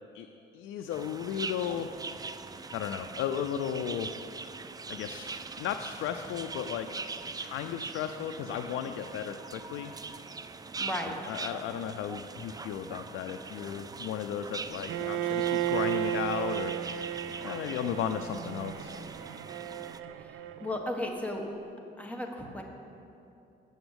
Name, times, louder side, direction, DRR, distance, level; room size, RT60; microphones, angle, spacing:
voice 1, 0.5-1.9 2.7-4.1 4.9-5.3 5.6-9.9 11.1-16.7 17.4-19.0, left 9 dB, 85° left, 7 dB, 0.4 m, -35 dB
sound 1, 0.9-20.0, right 4 dB, 20° right, 0.4 m, -42 dB
voice 2, 10.8-11.2 20.2-21.4 22.0-22.6, left 1 dB, 5° left, 1 dB, 1.3 m, -35 dB
Bowed string instrument, 14.9-20.9, right 12 dB, 85° right, 0.4 m, -34 dB
7.9 x 7.1 x 8.0 m, 2.7 s
cardioid pair, 90°, 20 cm